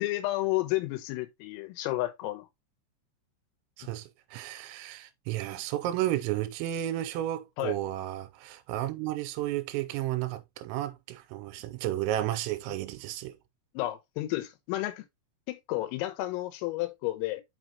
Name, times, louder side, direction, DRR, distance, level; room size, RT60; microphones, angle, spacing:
voice 1, 0.0-2.5 7.6-7.7 13.8-15.0 15.5-17.4, left 17 dB, 85° left, 3.5 m, -31 dB
voice 2, 3.8-13.4, right 13 dB, 85° right, 3.4 m, -32 dB
6.4 x 5.7 x 2.9 m
omnidirectional pair, 5.9 m